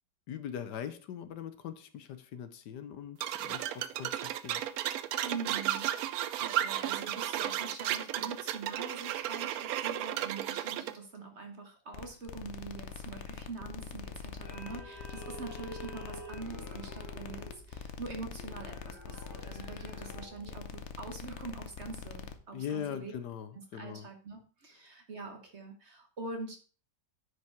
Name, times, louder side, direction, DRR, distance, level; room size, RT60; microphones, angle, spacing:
voice 1, 0.3-4.6 22.5-24.1, left 9 dB, 70° left, 10 dB, 1.3 m, -41 dB
sound 1, 3.2-10.9, right 12 dB, 70° right, 0.9 m, -34 dB
voice 2, 5.2-23.1 23.7-26.6, right 4 dB, 45° right, 5 dB, 1.2 m, -44 dB
sound 2, 11.9-22.4, left 7 dB, 55° left, 0.8 m, -44 dB
sound 3, 13.6-20.6, equal, 10° left, 1.4 m, -49 dB
9.6 x 5.1 x 4.4 m, 0.39 s
omnidirectional pair, 1.9 m